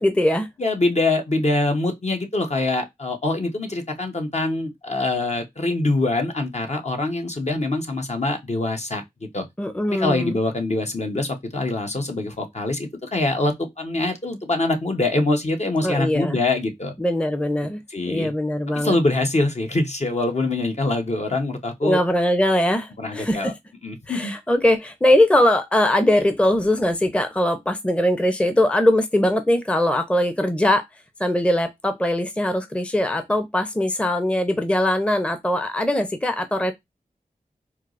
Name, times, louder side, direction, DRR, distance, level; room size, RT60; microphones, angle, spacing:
voice 1, 0.0-0.5 9.6-10.4 15.8-16.4 17.0-17.8 18.1-19.0 21.8-23.5 24.1-30.8 31.2-36.7, left 1 dB, 10° left, 0.6 m, -21 dB
voice 2, 0.6-9.5 9.9-16.9 17.9-18.3 18.7-22.0 23.0-23.5 23.8-24.3, left 2 dB, 50° left, 0.9 m, -24 dB
4.4 x 2.0 x 2.5 m
cardioid pair, 40°, 15 cm